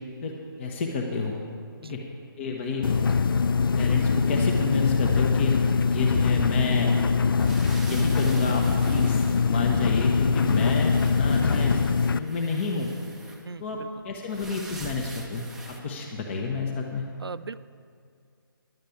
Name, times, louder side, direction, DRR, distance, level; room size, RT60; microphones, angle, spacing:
voice 1, 0.2-1.4 1.8-2.0 2.4-2.8 3.4-5.6 5.8-6.9 7.8-11.8 12.1-12.9 13.6-13.8 14.0-17.0, left 4 dB, 30° left, 0 dB, 0.9 m, -30 dB
sound 1, 2.8-12.2, left 5 dB, 65° left, 0.4 m, -23 dB
sound 2, 7.4-9.9 10.1-13.4 14.3-15.8, right 2 dB, 5° right, 0.5 m, -43 dB
voice 2, 13.4-13.9 17.2-17.6, right 5 dB, 90° right, 16 dB, 0.4 m, -39 dB
10.5 x 6.5 x 8.4 m, 2.3 s
figure-of-eight pair, 150°, 12 cm